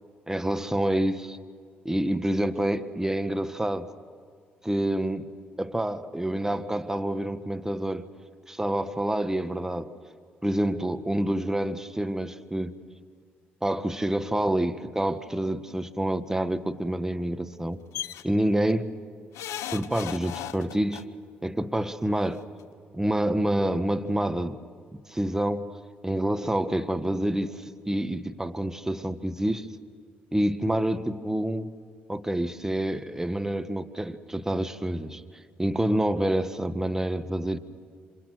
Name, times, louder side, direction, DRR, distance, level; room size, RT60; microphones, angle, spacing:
voice 1, 0.3-1.4 1.8-3.9 4.6-5.3 5.6-8.1 8.5-9.9 10.4-12.8 13.6-17.8 18.2-18.9 19.7-21.0 21.4-22.4 22.9-24.6 24.9-25.7 26.0-29.7 30.3-31.7 32.1-35.2 35.6-37.6, right 1 dB, 10° right, 1.5 m, -27 dB
sound 1, 17.9-18.2 19.3-21.0 22.2-22.3 22.6-22.7, left 11 dB, 70° left, 0.9 m, -36 dB
27.0 x 26.0 x 6.3 m
hypercardioid pair, 55°, 5 cm